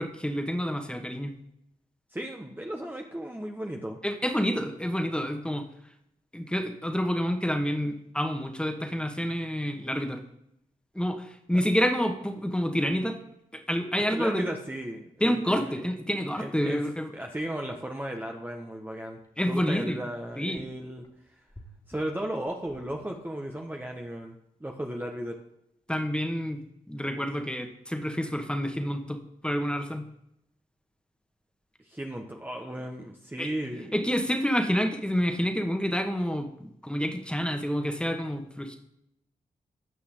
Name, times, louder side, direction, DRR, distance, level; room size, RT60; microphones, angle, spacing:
voice 1, 0.0-1.3 4.0-5.6 6.3-10.2 11.0-13.2 13.5-14.4 15.2-17.1 19.4-20.0 20.4-20.7 25.9-26.6 26.9-29.2 29.4-30.0 33.4-33.5 33.9-38.8, equal, 5° left, 4 dB, 1.8 m, -28 dB
voice 2, 2.1-4.0 11.5-11.6 14.1-15.7 16.3-16.8 17.1-21.1 21.9-25.4 31.9-33.9, right 1 dB, 10° right, 1 dB, 1.4 m, -35 dB
sound 1, 19.2-19.3 19.8-19.9 20.3-21.1 21.5-23.8 24.0-24.1, left 1 dB, 25° left, 2.5 m, -52 dB
16.5 x 5.6 x 3.9 m, 0.78 s
supercardioid pair, 45°, 15 cm